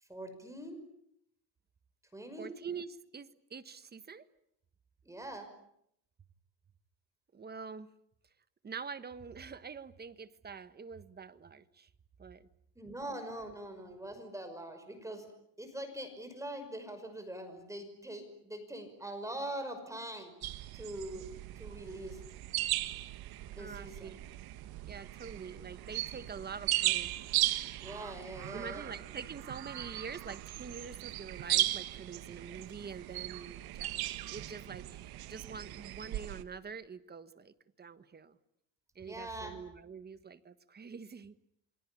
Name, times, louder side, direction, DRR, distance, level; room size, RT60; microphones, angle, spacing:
voice 1, 0.1-0.8 2.1-2.5 5.1-5.5 12.8-15.3 15.6-20.3 20.7-21.3 21.6-22.2 23.5-24.2 27.8-29.0 39.1-39.6, right 1 dB, 10° right, 8 dB, 5.8 m, -43 dB
voice 2, 2.4-4.3 7.3-7.9 8.6-11.9 12.2-12.5 21.7-21.8 23.6-24.2 24.8-27.1 28.5-34.0 34.3-38.4 38.9-41.3, right 5 dB, 25° right, 13 dB, 1.4 m, -45 dB
sound 1, 20.4-36.4, right 15 dB, 75° right, 1.4 m, -37 dB
28.5 x 23.0 x 8.6 m, 0.73 s
cardioid pair, 130°, 38 cm